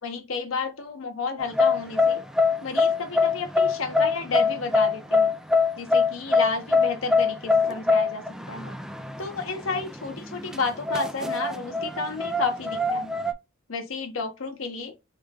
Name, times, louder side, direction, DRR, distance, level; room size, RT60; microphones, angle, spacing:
voice 1, 0.0-2.2 2.6-5.3 5.8-8.8 9.2-13.2 13.7-14.9, left 3 dB, 85° left, 0.9 m, -31 dB
sound 1, 1.4-13.3, left 4 dB, 5° right, 0.4 m, -24 dB
3.4 x 3.2 x 3.4 m
head